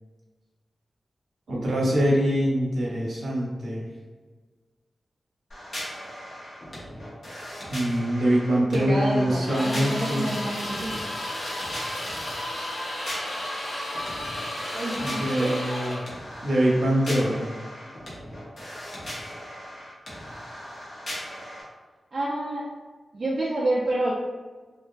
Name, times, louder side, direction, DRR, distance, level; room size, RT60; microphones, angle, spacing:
voice 1, 1.5-3.8 7.7-10.3 15.0-16.0 16.4-17.5, equal, 75° right, -4 dB, 0.9 m, -24 dB
sound 1, 5.5-21.6, equal, 45° left, 0.9 m, -39 dB
voice 2, 8.7-11.0 14.7-15.6 22.1-22.7 23.1-24.1, right 1 dB, 45° right, -6 dB, 0.4 m, -28 dB
sound 2, 9.4-16.1, left 1 dB, 85° left, 0.8 m, -33 dB
2.9 x 2.5 x 2.3 m, 1.4 s
wide cardioid pair, 145°, 0 cm